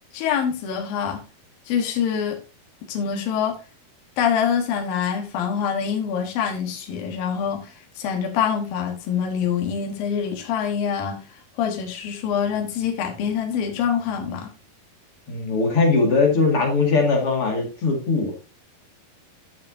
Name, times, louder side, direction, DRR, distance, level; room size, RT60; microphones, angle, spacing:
voice 1, 0.1-1.2 1.7-2.4 2.9-3.6 4.2-11.2 11.6-14.5, left 7 dB, 70° left, 2 dB, 3.1 m, -25 dB
voice 2, 15.3-18.3, left 3 dB, 45° left, 1 dB, 2.5 m, -20 dB
11.5 x 7.0 x 2.7 m, 0.32 s
omnidirectional pair, 4.4 m